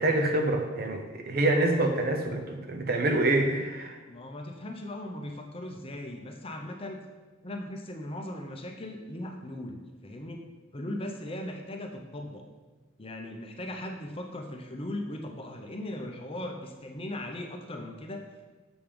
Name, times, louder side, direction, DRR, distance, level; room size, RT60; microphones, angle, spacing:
voice 1, 0.0-4.0, right 2 dB, 50° right, 4 dB, 0.8 m, -26 dB
voice 2, 4.1-7.0 7.4-12.5 13.0-18.4, left 1 dB, 30° left, 3 dB, 0.7 m, -38 dB
7.1 x 5.2 x 5.1 m, 1.3 s
head